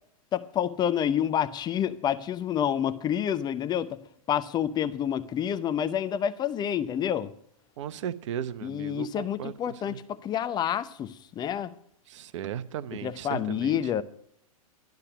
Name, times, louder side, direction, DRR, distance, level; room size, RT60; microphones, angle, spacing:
voice 1, 0.3-4.0 4.3-7.3 8.6-11.7 12.9-14.0, left 9 dB, 25° left, 0.7 m, -28 dB
voice 2, 7.8-9.5 12.1-13.8, right 10 dB, 55° right, 0.9 m, -36 dB
12.0 x 12.0 x 5.9 m
figure-of-eight pair, 105°, 19 cm